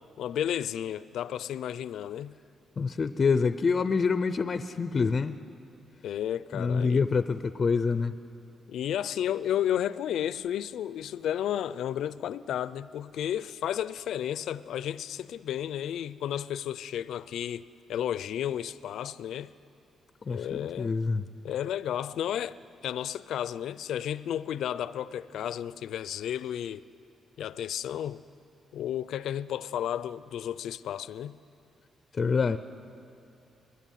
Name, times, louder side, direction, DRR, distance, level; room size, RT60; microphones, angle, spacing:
voice 1, 0.2-2.3 6.0-7.0 8.7-19.5 20.3-20.9 21.4-22.6 22.8-26.8 27.4-28.2 28.7-31.4, left 10 dB, 75° left, 0.6 m, -32 dB
voice 2, 2.8-5.4 6.5-8.1 20.3-21.3 32.1-32.6, left 5 dB, 30° left, 0.5 m, -26 dB
23.5 x 21.5 x 9.2 m
wide cardioid pair, 170°, 0 cm